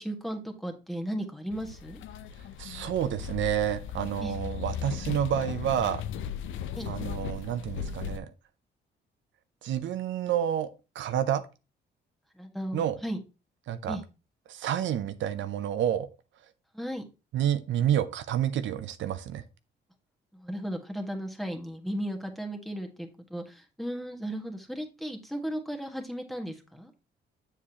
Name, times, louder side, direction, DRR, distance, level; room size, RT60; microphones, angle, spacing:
voice 1, 0.0-2.0 4.2-4.4 6.7-6.9 12.4-13.2 13.8-14.0 16.7-17.0 20.3-26.9, equal, ahead, 3 dB, 1.6 m, -35 dB
sound 1, 1.5-8.2, left 9 dB, 80° left, 0.6 m, -37 dB
voice 2, 2.6-6.0 6.9-8.3 9.6-10.7 10.9-11.4 12.7-13.0 13.7-14.0 14.5-16.1 17.3-19.4, right 10 dB, 75° right, 11 dB, 0.6 m, -29 dB
7.2 x 6.7 x 2.9 m, 0.29 s
cardioid pair, 90°, 20 cm